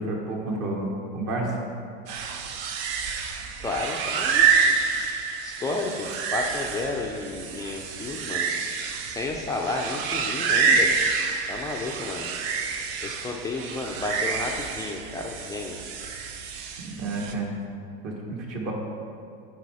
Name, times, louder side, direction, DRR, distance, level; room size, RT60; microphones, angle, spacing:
voice 1, 0.0-1.5 16.8-17.5 18.0-18.7, right 2 dB, 50° right, -1 dB, 1.7 m, -30 dB
sound 1, 2.1-17.3, right 5 dB, 65° right, 0.8 m, -27 dB
voice 2, 3.6-4.8 5.4-8.5 9.0-10.9 11.5-12.3 13.0-15.8, left 3 dB, 10° left, -1 dB, 0.4 m, -32 dB
8.5 x 4.6 x 4.8 m, 2.4 s
supercardioid pair, 115°, 32 cm